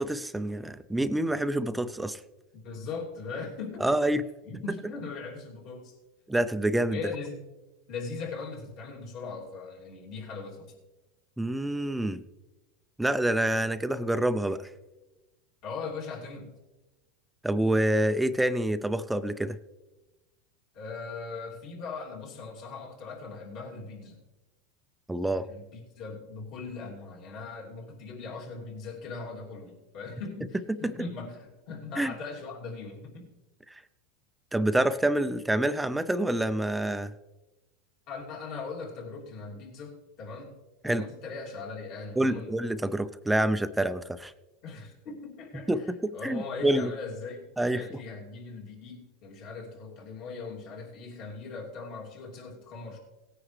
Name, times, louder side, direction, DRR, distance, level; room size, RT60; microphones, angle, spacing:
voice 1, 0.0-2.2 3.8-4.2 6.3-7.0 11.4-12.2 13.0-14.7 17.4-19.6 25.1-25.5 30.8-30.9 32.0-32.1 33.7-33.8 34.5-37.1 40.8-41.1 42.2-44.3 45.7-46.9 47.6-48.0, right 1 dB, 5° right, 12 dB, 0.5 m, -27 dB
voice 2, 2.5-3.9 4.5-5.9 6.9-7.4 7.9-10.7 15.6-16.5 20.7-24.2 25.4-33.3 38.1-40.5 40.8-42.5 44.6-47.5 47.7-53.0, left 4 dB, 55° left, -2 dB, 2.9 m, -40 dB
18.0 x 9.8 x 3.3 m, 1.1 s
supercardioid pair, 120°, 0 cm